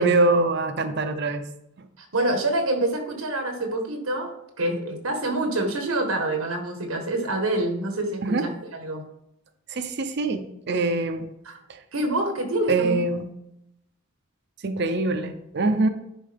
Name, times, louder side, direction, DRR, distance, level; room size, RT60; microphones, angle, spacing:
voice 1, 0.0-1.4 8.2-8.4 9.7-11.3 11.7-11.8 12.7-13.3 14.6-15.9, right 3 dB, 50° right, 9 dB, 0.6 m, -24 dB
voice 2, 2.0-4.3 4.6-9.0 11.4-11.5 11.9-13.0, right 1 dB, 85° right, 4 dB, 1.3 m, -26 dB
10.0 x 4.7 x 3.4 m, 0.81 s
head